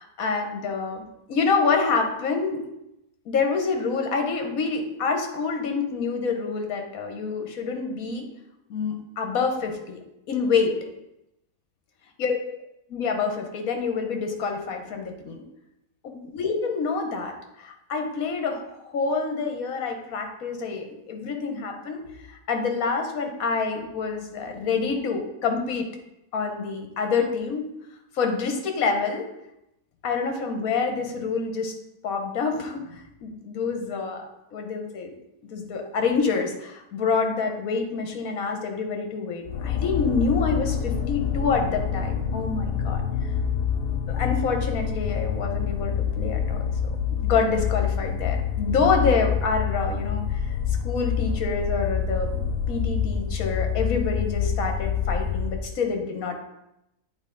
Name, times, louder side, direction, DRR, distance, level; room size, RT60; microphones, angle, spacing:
voice 1, 0.0-2.6 3.2-8.2 8.7-10.8 12.2-12.4 12.9-15.4 16.0-22.0 22.3-25.9 26.3-27.6 28.1-29.3 30.0-31.7 32.0-34.3 34.5-35.1 35.5-43.0 44.1-46.6 47.1-50.4 50.8-56.4, left 4 dB, 65° left, 4 dB, 1.4 m, -27 dB
sound 1, 39.5-55.7, left 7 dB, 90° left, 0.5 m, -27 dB
8.8 x 4.1 x 3.8 m, 0.87 s
omnidirectional pair, 1.6 m